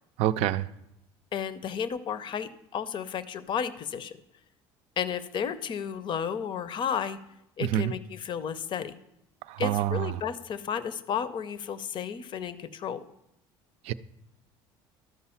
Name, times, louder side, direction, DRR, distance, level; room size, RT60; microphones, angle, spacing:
voice 1, 0.2-0.7 7.6-7.9 9.5-10.1 13.8-13.9, right 13 dB, 65° right, 0.4 m, -27 dB
voice 2, 1.3-4.2 5.0-7.2 7.6-9.0 9.6-13.0, left 7 dB, 45° left, 0.6 m, -33 dB
12.5 x 4.8 x 5.7 m
supercardioid pair, 95°, 11 cm